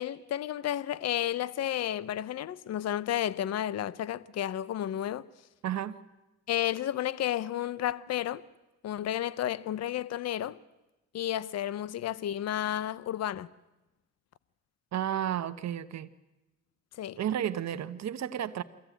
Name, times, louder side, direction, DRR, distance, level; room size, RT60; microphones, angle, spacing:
voice 1, 0.0-5.2 6.5-8.4 8.8-10.6 11.1-13.5 17.0-17.2, left 11 dB, 55° left, 0.7 m, -32 dB
voice 2, 5.6-6.0 14.9-16.1 17.2-18.6, right 10 dB, 60° right, 1.0 m, -32 dB
23.0 x 15.5 x 9.2 m
cardioid pair, 90°, 30 cm